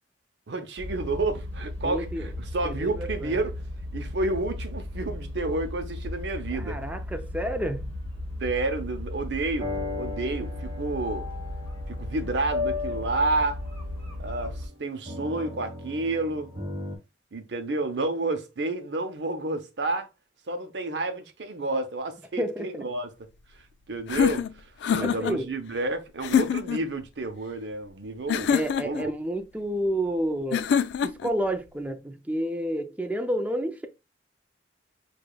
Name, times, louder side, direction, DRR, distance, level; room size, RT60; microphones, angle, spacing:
voice 1, 0.5-3.6 3.9-6.8 8.4-11.3 11.9-13.6 14.2-16.5 17.3-20.1 20.5-23.1 23.9-28.5 28.8-29.1, right 2 dB, 80° right, 0.7 m, -30 dB
sound 1, 0.8-14.7, left 1 dB, 10° left, 1.2 m, -36 dB
voice 2, 1.8-2.3 2.6-3.4 6.5-7.9 22.4-22.9 25.0-25.5 28.5-30.7 31.0-33.9, right 1 dB, 10° right, 0.5 m, -30 dB
sound 2, 9.6-17.0, left 3 dB, 35° right, 1.4 m, -36 dB
sound 3, 24.1-25.4 26.2-26.8 28.3-29.1 30.5-31.3, left 7 dB, 75° left, 0.3 m, -25 dB
6.6 x 2.3 x 2.3 m
head